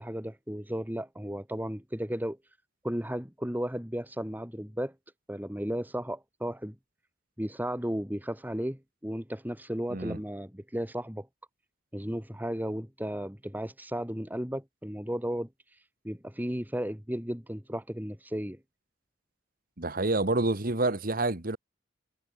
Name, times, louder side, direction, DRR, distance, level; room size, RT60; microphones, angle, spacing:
voice 1, 0.0-2.6 2.8-4.9 5.3-6.7 7.4-11.3 11.9-18.6, equal, 10° right, 2.9 m, -34 dB
voice 2, 19.8-21.6, right 2 dB, 50° right, 1.9 m, -28 dB
head